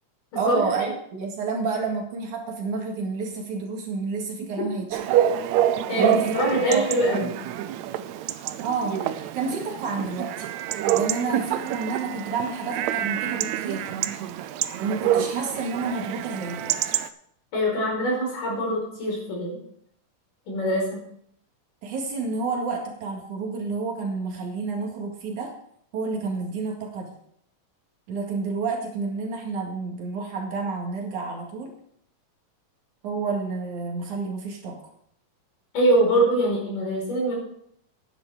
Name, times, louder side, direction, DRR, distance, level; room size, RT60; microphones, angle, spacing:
voice 1, 0.4-5.3 6.0-6.3 6.7-7.3 8.6-10.5 10.9-14.0 14.8-17.0 21.8-25.5 25.9-27.2 28.1-31.7 33.0-34.8, right 4 dB, 65° right, 1 dB, 3.4 m, -30 dB
Chatter / Bark / Livestock farm animals working animals, 4.9-17.1, right 11 dB, 85° right, 1.6 m, -27 dB
voice 2, 5.9-7.3 17.5-19.6 20.5-21.0 35.7-37.3, right 1 dB, 75° left, -3 dB, 6.7 m, -23 dB
10.5 x 10.0 x 4.9 m, 0.69 s
omnidirectional pair, 3.8 m